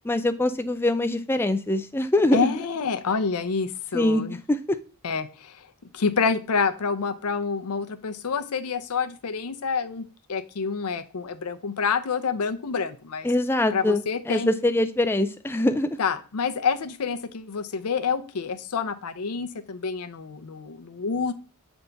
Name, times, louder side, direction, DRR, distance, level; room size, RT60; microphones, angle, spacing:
voice 1, 0.0-2.5 3.9-4.6 13.2-16.0, left 1 dB, 10° left, 8 dB, 0.4 m, -23 dB
voice 2, 2.3-4.4 5.0-5.6 5.9-13.3 13.7-14.5 16.0-21.3, left 5 dB, 90° left, 11 dB, 0.6 m, -28 dB
6.9 x 3.5 x 3.9 m, 0.36 s
head